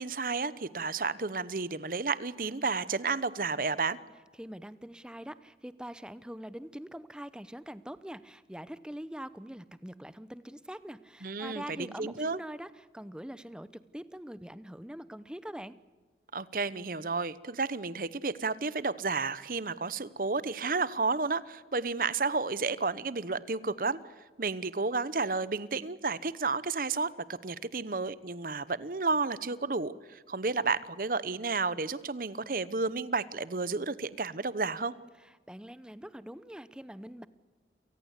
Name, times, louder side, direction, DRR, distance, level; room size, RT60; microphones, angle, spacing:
voice 1, 0.0-4.0 11.2-12.4 16.3-24.0 24.4-34.9, right 4 dB, 50° right, 17 dB, 0.9 m, -32 dB
voice 2, 4.4-15.8 35.2-37.3, equal, 5° right, 15 dB, 0.7 m, -44 dB
29.0 x 18.5 x 8.2 m, 1.4 s
head